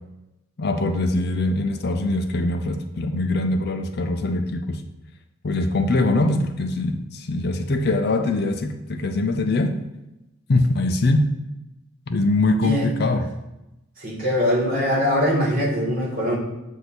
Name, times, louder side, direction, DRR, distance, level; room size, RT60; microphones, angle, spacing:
voice 1, 0.6-4.8 5.4-9.7 10.5-11.3 12.1-13.2, left 2 dB, 50° left, 6 dB, 0.5 m, -22 dB
voice 2, 14.0-16.4, equal, 40° right, -3 dB, 1.8 m, -22 dB
8.0 x 2.7 x 6.1 m, 0.95 s
head